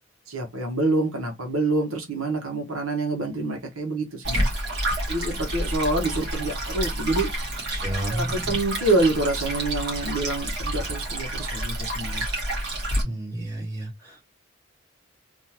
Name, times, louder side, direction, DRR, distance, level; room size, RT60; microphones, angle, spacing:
voice 1, 0.3-4.5 5.1-7.3 8.1-12.3, right 2 dB, 85° right, 1.3 m, -26 dB
Stream, 4.2-13.0, right 1 dB, 50° right, 1.8 m, -29 dB
voice 2, 7.7-8.6 13.0-14.3, right 1 dB, 20° right, 2.0 m, -32 dB
3.6 x 2.8 x 2.9 m
head